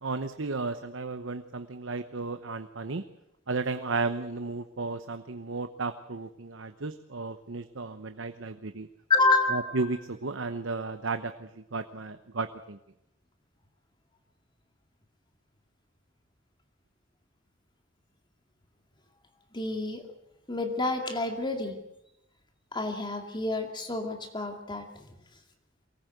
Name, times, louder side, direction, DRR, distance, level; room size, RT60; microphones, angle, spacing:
voice 1, 0.0-3.0 3.5-8.9 9.5-12.8, right 3 dB, 70° right, 9 dB, 0.9 m, -34 dB
voice 2, 9.1-9.8 19.5-20.0 20.5-21.8 22.7-24.9, left 3 dB, 25° left, 4 dB, 2.4 m, -28 dB
23.5 x 19.0 x 8.1 m, 0.84 s
head